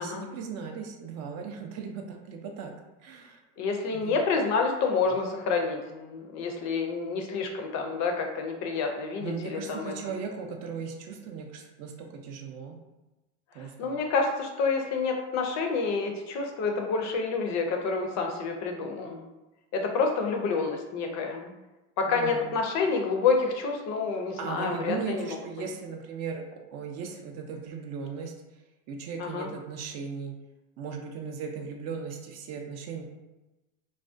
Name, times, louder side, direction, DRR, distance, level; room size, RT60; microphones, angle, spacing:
voice 1, 0.0-2.7 3.0-3.4 3.9-4.1 9.2-12.8 13.5-14.0 22.0-22.5 24.4-26.4 26.7-28.3 28.9-30.3 30.8-33.0, right 6 dB, 45° right, 2 dB, 0.4 m, -37 dB
voice 2, 3.6-9.9 13.6-19.2 19.7-21.5 22.0-25.3 29.2-29.5, left 4 dB, 45° left, 3 dB, 0.5 m, -28 dB
2.3 x 2.1 x 2.4 m, 1.1 s
supercardioid pair, 100°, 39 cm